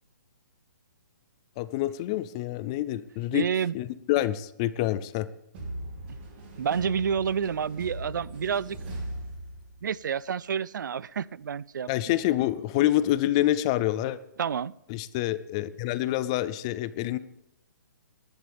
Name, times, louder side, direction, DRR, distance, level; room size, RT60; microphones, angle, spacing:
voice 1, 1.6-3.4 3.7-5.3 11.9-14.2 14.9-17.2, left 14 dB, 20° left, 0.4 m, -27 dB
voice 2, 3.3-3.8 6.1-6.2 6.6-8.8 9.8-11.9 14.4-14.7, right 7 dB, 70° right, 0.5 m, -29 dB
sound 1, 5.5-10.0, right 1 dB, 30° right, 3.1 m, -39 dB
18.0 x 11.5 x 3.5 m
hypercardioid pair, 165°, 10 cm